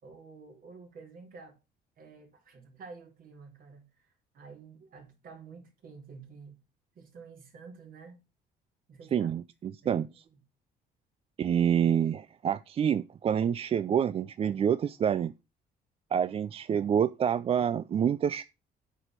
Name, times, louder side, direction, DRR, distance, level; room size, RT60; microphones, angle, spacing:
voice 1, 0.0-1.6 2.0-4.1 4.3-6.6 6.9-8.2 8.9-9.3 9.8-10.4, right 4 dB, 55° right, 3.3 m, -50 dB
voice 2, 9.1-10.1 11.4-15.3 16.1-18.4, right 8 dB, 35° right, 0.4 m, -27 dB
8.3 x 5.1 x 6.0 m
cardioid pair, 110°, 17 cm